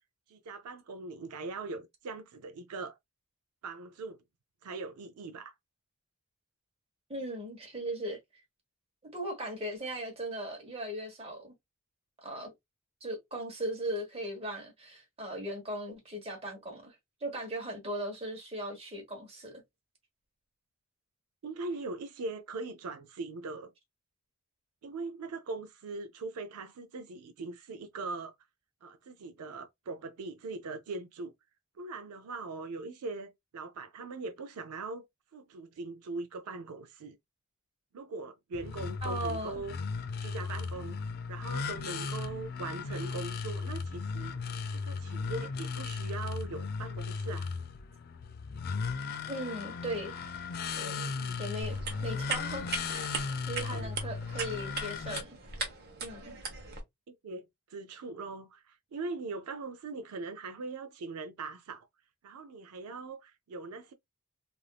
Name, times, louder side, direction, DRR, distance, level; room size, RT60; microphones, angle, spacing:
voice 1, 0.3-3.0 3.6-4.2 4.6-5.5 21.4-23.7 24.8-28.3 28.8-31.3 31.8-35.0 35.3-37.2 37.9-39.7 40.2-41.0 41.3-44.4 44.7-47.5 51.2-51.4 53.6-53.9 57.1-61.9 62.2-63.9, right 3 dB, 80° right, 0.4 m, -41 dB
voice 2, 7.1-8.2 9.1-11.5 12.2-12.5 13.0-16.9 17.2-19.6 39.0-39.6 49.3-50.2 50.8-51.1 51.4-53.1 53.5-55.4 56.0-56.3, right 1 dB, 25° right, 1.2 m, -38 dB
sound 1, 38.5-55.2, left 5 dB, 45° left, 0.3 m, -36 dB
sound 2, 51.6-56.8, right 4 dB, 45° right, 0.9 m, -39 dB
3.3 x 2.5 x 2.3 m
head